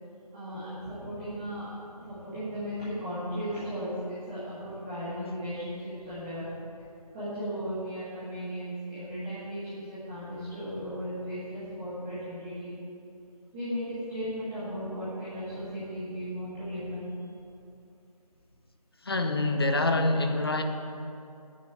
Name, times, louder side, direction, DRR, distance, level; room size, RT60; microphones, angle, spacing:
voice 1, 0.3-6.5 7.1-12.7 13.5-17.2, equal, 10° right, -13 dB, 1.6 m, -36 dB
voice 2, 19.0-20.6, left 2 dB, 40° left, 5 dB, 0.9 m, -26 dB
9.9 x 8.0 x 9.0 m, 2.7 s
figure-of-eight pair, 170°, 20 cm